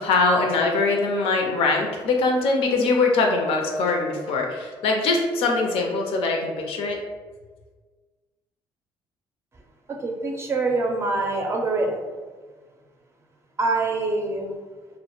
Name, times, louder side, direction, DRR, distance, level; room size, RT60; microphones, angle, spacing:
voice 1, 0.0-7.0, left 3 dB, 80° left, 2 dB, 0.5 m, -22 dB
voice 2, 10.0-12.0 13.6-14.5, right 3 dB, 30° right, 1 dB, 0.5 m, -24 dB
2.1 x 2.1 x 2.9 m, 1.4 s
cardioid pair, 95°, 10 cm